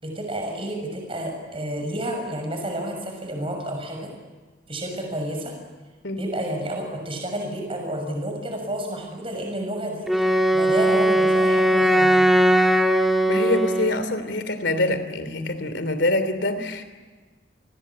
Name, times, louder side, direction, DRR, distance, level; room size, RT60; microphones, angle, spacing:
voice 1, 0.0-4.1 4.7-5.5 6.2-12.2, right 1 dB, 30° right, 2 dB, 6.6 m, -30 dB
Wind instrument woodwind instrument, 10.1-14.0, right 1 dB, ahead, 1.8 m, -19 dB
voice 2, 13.3-16.8, left 2 dB, 70° left, 11 dB, 3.1 m, -25 dB
29.5 x 20.5 x 8.6 m, 1.3 s
head